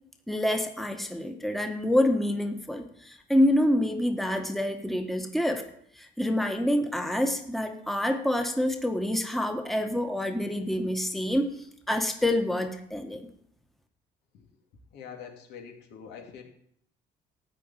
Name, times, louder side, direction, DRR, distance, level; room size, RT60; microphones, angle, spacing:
voice 1, 0.3-5.6 6.0-11.5 11.9-13.3, left 1 dB, ahead, 5 dB, 1.3 m, -27 dB
voice 2, 14.9-16.4, left 7 dB, 80° left, 2 dB, 2.7 m, -44 dB
14.0 x 5.1 x 9.0 m, 0.70 s
cardioid pair, 110°, 17 cm